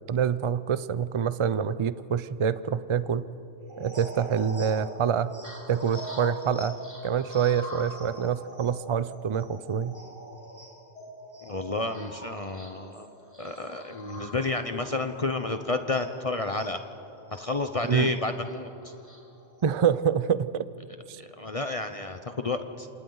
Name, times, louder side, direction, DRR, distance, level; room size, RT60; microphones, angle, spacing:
voice 1, 0.1-3.3 3.8-5.3 5.7-10.0 17.8-18.1 19.6-20.7 21.1-21.2, right 7 dB, 45° right, 14 dB, 0.4 m, -26 dB
sound 1, 3.6-16.8 17.3-19.7, equal, 25° right, 3.8 m, -43 dB
voice 2, 11.4-13.1 13.4-16.8 17.3-18.9 21.1-22.9, left 3 dB, 35° left, 7 dB, 0.8 m, -31 dB
28.5 x 27.5 x 4.0 m, 2.9 s
omnidirectional pair, 1.1 m